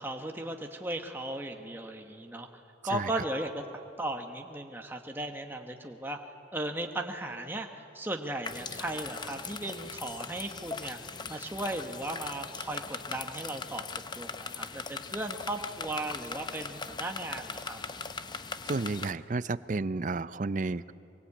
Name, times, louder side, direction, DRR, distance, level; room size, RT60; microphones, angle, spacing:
voice 1, 0.0-2.5 2.8-3.6 4.0-6.2 6.5-11.0 11.3-13.8 14.1-17.8, right 1 dB, 10° right, 3 dB, 1.2 m, -36 dB
sound 1, 8.4-19.1, left 5 dB, 25° left, 0.6 m, -40 dB
voice 2, 18.7-20.9, right 3 dB, 40° right, 16 dB, 0.5 m, -32 dB
24.0 x 23.0 x 8.5 m, 2.7 s
head